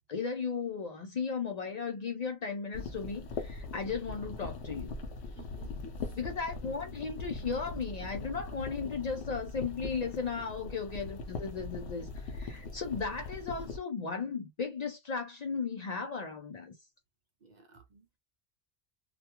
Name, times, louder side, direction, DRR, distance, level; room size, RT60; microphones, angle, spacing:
voice 1, 0.1-5.0 6.2-16.7, left 5 dB, 50° left, 0.5 m, -36 dB
sound 1, 2.7-13.8, left 3 dB, 85° left, 0.8 m, -41 dB
voice 2, 5.3-6.2 6.6-6.7 10.3-10.7 17.4-18.2, right 4 dB, 55° right, 0.6 m, -55 dB
2.4 x 2.2 x 2.8 m
omnidirectional pair, 1.1 m